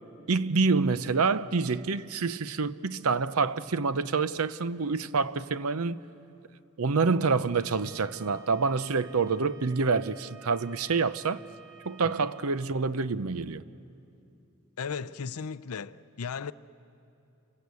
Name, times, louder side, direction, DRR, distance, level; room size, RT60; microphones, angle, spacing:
voice 1, 0.3-6.0 6.8-11.4 11.8-13.6, right 4 dB, 70° right, 0.7 m, -27 dB
Bowed string instrument, 7.4-12.7, right 4 dB, 55° right, 1.8 m, -54 dB
voice 2, 14.8-16.5, left 6 dB, 75° left, 0.6 m, -36 dB
29.5 x 23.5 x 8.3 m
head